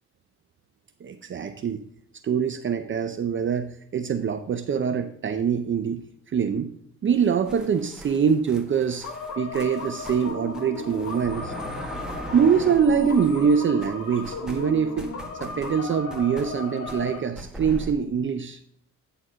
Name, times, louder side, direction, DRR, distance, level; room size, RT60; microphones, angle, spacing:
voice 1, 1.0-1.8 2.2-6.0 6.3-6.7 7.0-9.1 9.4-11.5 12.3-15.1 15.4-18.6, right 7 dB, 40° right, 8 dB, 0.6 m, -24 dB
sound 1, 7.1-13.5 13.8-17.9, right 1 dB, ahead, 1.5 m, -40 dB
sound 2, 9.0-17.2, left 3 dB, 65° left, 2.0 m, -36 dB
9.2 x 4.1 x 6.2 m, 0.64 s
cardioid pair, 90°, 30 cm